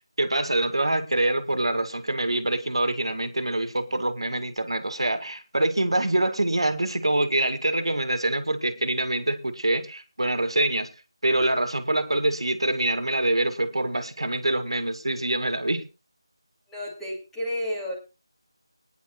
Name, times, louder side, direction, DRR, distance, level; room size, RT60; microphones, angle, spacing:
voice 1, 0.2-10.9 11.2-15.9, right 1 dB, 80° right, 9 dB, 2.2 m, -25 dB
voice 2, 16.7-17.9, equal, 5° left, -5 dB, 2.6 m, -31 dB
21.5 x 10.5 x 2.3 m, 0.28 s
figure-of-eight pair, 170°, 3 cm